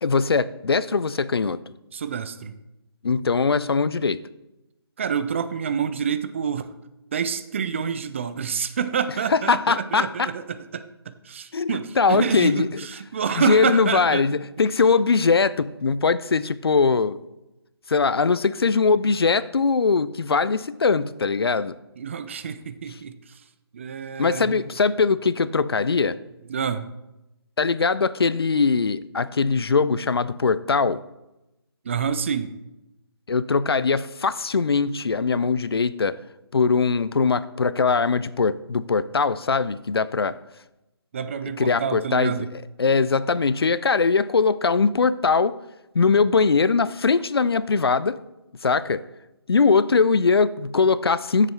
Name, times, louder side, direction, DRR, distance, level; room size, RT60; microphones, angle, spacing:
voice 1, 0.0-1.6 3.0-4.2 9.3-10.3 11.5-12.8 13.4-17.2 17.9-21.7 24.2-26.2 27.6-31.0 33.3-36.2 36.5-40.4 41.6-42.5 42.8-45.6 45.9-48.2 48.6-49.0 49.5-51.5, left 4 dB, 65° left, 16 dB, 0.5 m, -21 dB
voice 2, 1.9-2.5 5.0-6.7 7.1-10.8 11.2-14.3 22.0-23.1 23.7-24.6 26.5-26.9 31.8-32.5 41.1-42.5, right 7 dB, 30° right, 11 dB, 0.5 m, -27 dB
13.5 x 7.4 x 3.3 m, 0.96 s
figure-of-eight pair, 150°, 14 cm